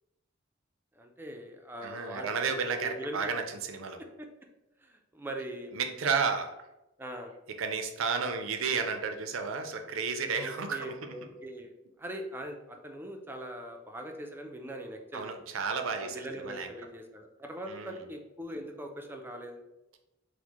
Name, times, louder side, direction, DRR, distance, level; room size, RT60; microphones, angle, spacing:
voice 1, 1.0-3.2 4.2-4.3 4.8-5.7 7.0-7.3 10.3-11.7 12.0-15.3 16.0-19.6, right 1 dB, 10° right, 3 dB, 0.4 m, -41 dB
voice 2, 1.8-4.0 5.7-6.5 7.6-11.1 15.1-16.7 17.7-18.0, right 5 dB, 90° right, 6 dB, 0.5 m, -32 dB
4.5 x 2.1 x 2.9 m, 0.95 s
head